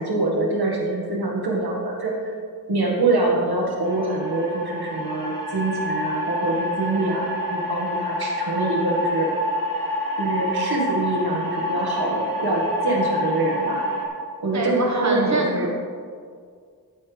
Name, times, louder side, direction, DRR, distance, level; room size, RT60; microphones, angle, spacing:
voice 1, 0.0-2.1 2.7-9.3 10.2-13.8 14.4-15.7, right 2 dB, 90° right, -2 dB, 1.8 m, -24 dB
sound 1, 3.8-14.0, left 1 dB, 65° right, 2.1 m, -27 dB
voice 2, 14.5-15.7, right 2 dB, 50° right, 0 dB, 1.4 m, -25 dB
12.5 x 8.8 x 3.4 m, 2.1 s
wide cardioid pair, 80°, 37 cm